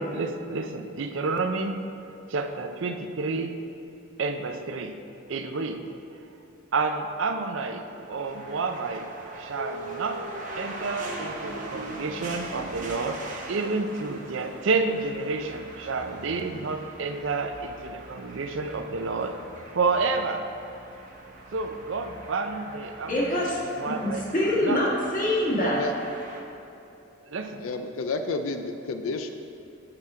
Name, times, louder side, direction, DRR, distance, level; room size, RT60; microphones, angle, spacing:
voice 1, 0.0-1.8 2.3-3.6 4.2-5.0 5.3-5.9 6.7-10.2 10.6-13.2 13.5-19.4 19.7-20.4 21.5-23.5 23.8-24.2 24.6-24.8 27.2-27.6, right 3 dB, 65° right, 6 dB, 0.5 m, -29 dB
sound 1, 7.8-26.4, right 2 dB, 35° right, 0.8 m, -41 dB
voice 2, 23.1-25.8, left 1 dB, 40° left, -5 dB, 1.6 m, -25 dB
voice 3, 27.6-29.3, left 3 dB, 75° left, 7 dB, 0.4 m, -30 dB
7.8 x 5.9 x 4.8 m, 2.8 s
head